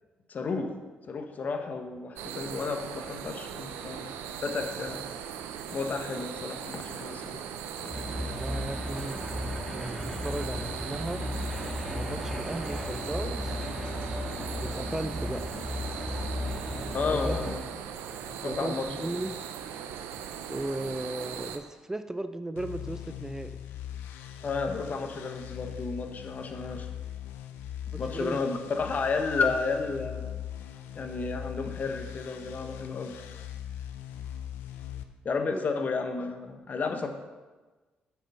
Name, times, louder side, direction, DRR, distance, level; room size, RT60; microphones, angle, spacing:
voice 1, 0.3-0.7 1.0-4.1 4.4-5.1 5.7-7.5 7.8-7.9 16.9-17.7 18.3-19.1 24.4-26.9 27.9-30.4 30.9-33.1 35.2-37.1, left 4 dB, 50° left, 6 dB, 1.2 m, -32 dB
sound 1, 2.2-21.6, right 8 dB, 90° right, 0.6 m, -39 dB
sound 2, 7.9-17.5, left 1 dB, ahead, 1.9 m, -35 dB
voice 2, 8.4-11.2 11.9-13.6 14.6-15.4 17.2-17.4 18.4-19.4 20.5-23.6 27.9-28.4 35.5-35.6, right 2 dB, 15° right, 10 dB, 0.5 m, -36 dB
sound 3, 22.6-35.0, left 10 dB, 85° left, 0.6 m, -40 dB
8.7 x 6.0 x 5.5 m, 1.3 s
supercardioid pair, 65°, 4 cm